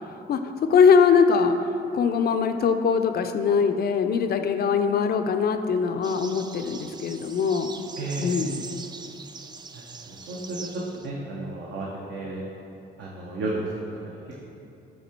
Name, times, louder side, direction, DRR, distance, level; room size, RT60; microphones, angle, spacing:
voice 1, 0.3-7.8 8.2-8.6, left 6 dB, 50° left, 8 dB, 0.5 m, -22 dB
sound 1, 6.0-11.1, right 4 dB, 20° right, 0.3 m, -41 dB
voice 2, 8.0-8.4 9.7-10.6 11.0-12.5 13.0-13.7, right 2 dB, 65° right, -3 dB, 0.9 m, -33 dB
8.3 x 3.7 x 4.4 m, 2.9 s
cardioid pair, 90°, 20 cm